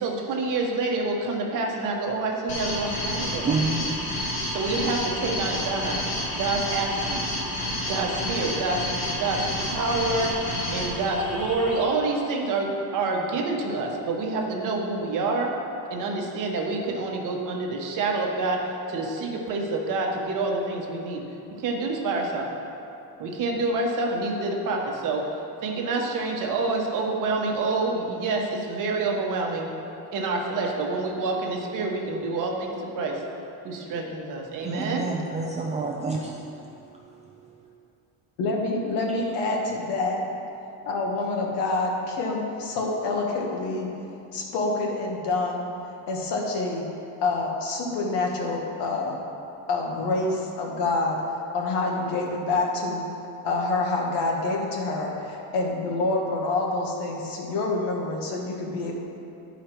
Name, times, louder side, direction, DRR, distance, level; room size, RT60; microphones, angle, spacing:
voice 1, 0.0-3.5 4.5-6.0 6.3-7.3 7.9-15.5 15.9-21.2 21.5-22.5 23.2-25.3 25.6-29.7 30.1-33.2 33.6-35.1, right 3 dB, 50° right, 1 dB, 1.1 m, -27 dB
sound 1, 2.5-11.8, left 1 dB, 40° left, 1.7 m, -30 dB
voice 2, 3.4-4.0 34.6-36.4, right 4 dB, 20° right, -3 dB, 0.3 m, -28 dB
voice 3, 38.4-40.2 40.8-43.9 44.3-45.6 46.1-46.8 47.2-49.2 49.7-51.2 51.5-53.0 53.4-58.9, left 3 dB, 75° left, 0 dB, 1.4 m, -27 dB
10.5 x 5.0 x 4.4 m, 2.7 s
cardioid pair, 160°, 41 cm